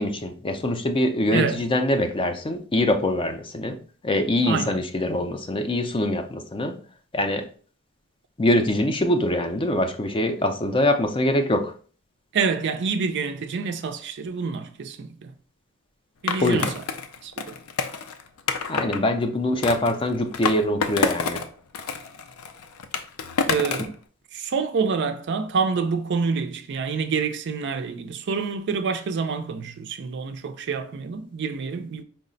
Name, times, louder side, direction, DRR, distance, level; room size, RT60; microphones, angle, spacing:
voice 1, 0.0-3.8 4.0-6.8 7.1-7.4 8.4-11.7 16.4-16.7 18.7-21.4, left 1 dB, 25° left, 0.4 m, -23 dB
voice 2, 4.5-4.8 12.3-15.3 16.2-16.7 17.2-17.4 23.5-23.9 24.3-32.0, right 5 dB, 55° right, 0.4 m, -27 dB
Skateboard, 16.3-19.0 19.6-21.5 21.7-23.9, left 5 dB, 85° left, 0.5 m, -28 dB
4.6 x 2.1 x 3.8 m
head